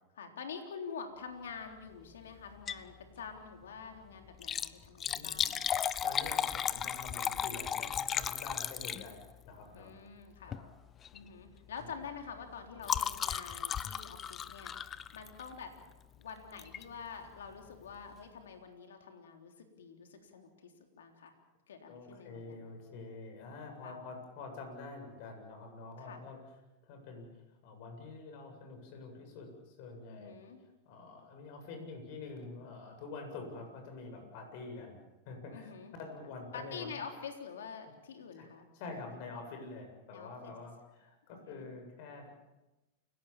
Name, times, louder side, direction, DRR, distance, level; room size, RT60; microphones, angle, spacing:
voice 1, 0.1-5.7 9.7-10.6 11.1-15.7 16.2-21.3 21.7-22.7 23.8-24.1 26.0-26.3 30.1-30.6 35.5-35.9 36.5-39.2 40.1-40.6 41.3-41.7, left 6 dB, 85° left, 4 dB, 3.6 m, -47 dB
Liquid, 2.5-2.9 3.3-3.4 4.3-9.4 10.4-10.7 11.0-11.3 11.6-15.6 16.6-16.8 17.4-17.5 17.7-17.8, left 8 dB, 25° left, 0.8 m, -35 dB
voice 2, 5.0-5.5 6.0-9.9 10.5-10.6 21.9-26.4 26.9-27.3 27.6-30.3 30.9-35.0 35.3-35.7 36.0-36.9 38.4-38.5 38.7-42.3, left 3 dB, 55° left, 5 dB, 7.7 m, -46 dB
29.0 x 17.0 x 7.4 m, 1.0 s
hypercardioid pair, 120°, 0 cm